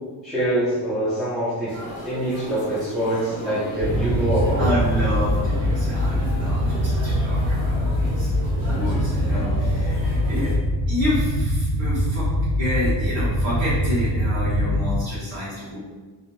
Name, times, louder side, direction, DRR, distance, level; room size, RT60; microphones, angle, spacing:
voice 1, 0.2-1.8 2.0-4.7, right 1 dB, ahead, -11 dB, 0.3 m, -24 dB
sound 1, 1.7-10.6, right 1 dB, 35° right, 0.8 m, -35 dB
sound 2, 3.8-15.0, equal, 75° right, 0.9 m, -23 dB
voice 2, 4.6-10.5 10.9-12.3 12.6-15.8, left 1 dB, 90° right, -13 dB, 1.3 m, -29 dB
2.6 x 2.1 x 3.0 m, 1.4 s
cardioid pair, 160°, 44 cm